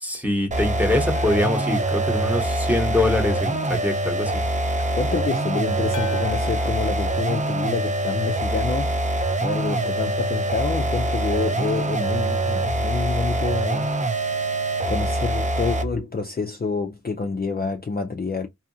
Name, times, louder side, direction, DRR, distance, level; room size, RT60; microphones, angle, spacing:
voice 1, 0.0-4.4, left 1 dB, 5° right, 1.0 m, -24 dB
sound 1, 0.5-16.0, right 2 dB, 25° right, 0.4 m, -24 dB
sound 2, 1.1-4.0 5.9-9.2 12.0-12.1, left 11 dB, 85° left, 0.6 m, -43 dB
voice 2, 4.9-8.9 9.4-14.4 14.9-18.5, left 4 dB, 35° left, 0.4 m, -28 dB
2.7 x 2.4 x 2.6 m
wide cardioid pair, 50°, 30 cm